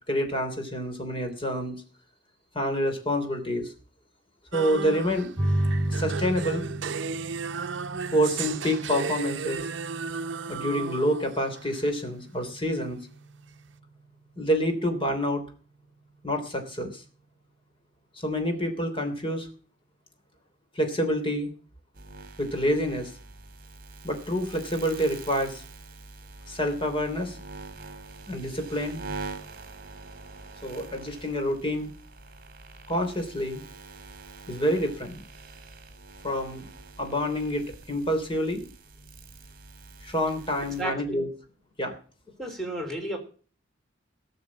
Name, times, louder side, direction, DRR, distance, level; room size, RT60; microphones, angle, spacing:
voice 1, 0.1-1.8 2.5-3.7 4.5-5.3 5.9-6.7 8.1-9.7 10.5-13.0 14.4-15.4 16.2-17.0 18.2-19.5 20.7-21.5 22.4-23.1 24.0-25.6 26.5-27.4 28.3-29.0 30.6-31.9 32.9-33.6 34.5-35.2 36.2-36.7 37.0-38.7 40.0-41.3 41.8-41.9, equal, 25° left, 5 dB, 3.2 m, -27 dB
sound 1, 4.5-11.8, right 5 dB, 70° right, 0.7 m, -34 dB
sound 2, 5.4-16.4, right 1 dB, 25° right, 3.7 m, -34 dB
sound 3, 21.9-40.8, right 3 dB, 50° right, 2.3 m, -44 dB
voice 2, 40.8-41.3 42.4-43.2, right 1 dB, ahead, 2 dB, 3.6 m, -33 dB
18.0 x 6.8 x 7.3 m, 0.40 s
head